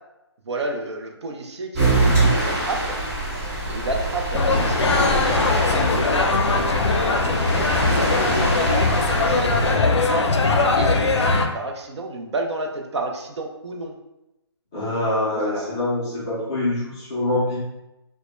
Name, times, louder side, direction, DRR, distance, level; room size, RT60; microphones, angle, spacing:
voice 1, 0.5-3.0 3.7-9.9 10.8-13.9 15.2-15.7, right 2 dB, 80° right, 2 dB, 0.5 m, -32 dB
sound 1, 1.7-9.7, right 2 dB, 35° right, 0.9 m, -24 dB
sound 2, 4.3-11.5, left 3 dB, 90° left, 0.4 m, -20 dB
voice 2, 14.7-17.6, left 2 dB, 10° left, -9 dB, 0.3 m, -25 dB
2.1 x 2.0 x 3.0 m, 0.94 s
hypercardioid pair, 165°, 14 cm